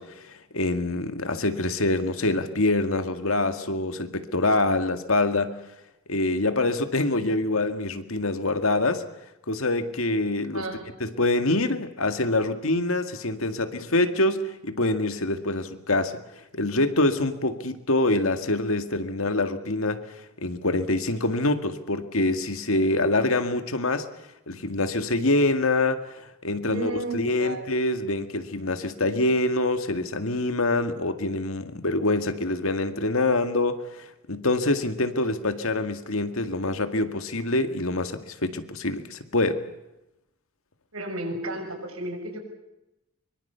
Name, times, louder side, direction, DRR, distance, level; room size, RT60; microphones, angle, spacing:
voice 1, 0.0-5.6 6.1-9.1 9.5-10.7 11.0-16.2 16.5-20.0 20.4-24.1 24.5-39.6, left 2 dB, 75° left, 8 dB, 2.0 m, -25 dB
voice 2, 10.3-10.8 26.6-27.7 40.9-42.4, right 1 dB, 85° right, 4 dB, 6.5 m, -33 dB
24.0 x 24.0 x 7.0 m, 0.92 s
head